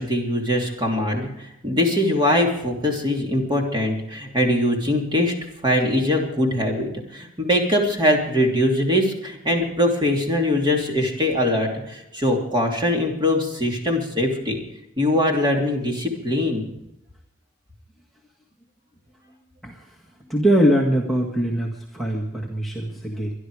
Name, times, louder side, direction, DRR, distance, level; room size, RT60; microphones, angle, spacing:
voice 1, 0.0-5.3 5.6-14.6 15.0-16.6, left 1 dB, 25° right, 1 dB, 3.0 m, -22 dB
voice 2, 20.3-23.3, equal, ahead, -2 dB, 1.8 m, -22 dB
23.5 x 11.5 x 4.9 m, 0.83 s
head